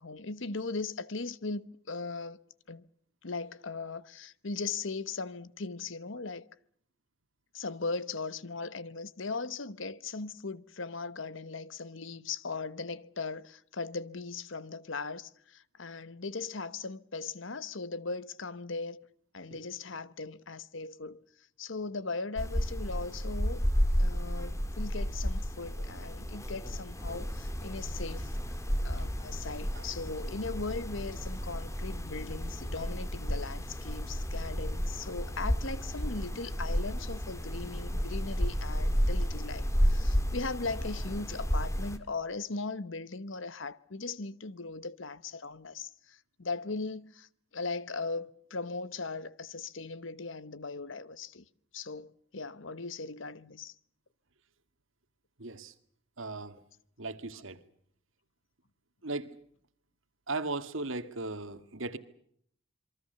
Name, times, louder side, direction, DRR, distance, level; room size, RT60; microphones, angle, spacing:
voice 1, 0.0-2.4 2.7-2.8 3.2-6.5 7.5-19.0 19.3-23.6 24.0-28.6 28.8-51.5 51.7-53.7, left 3 dB, 60° left, 1.1 m, -38 dB
sound 1, 22.4-42.0, equal, 15° left, 2.1 m, -32 dB
voice 2, 55.4-55.7 56.2-56.6 57.0-57.6 59.0-59.3 60.3-62.0, right 3 dB, 65° right, 2.0 m, -37 dB
27.0 x 23.5 x 6.8 m
head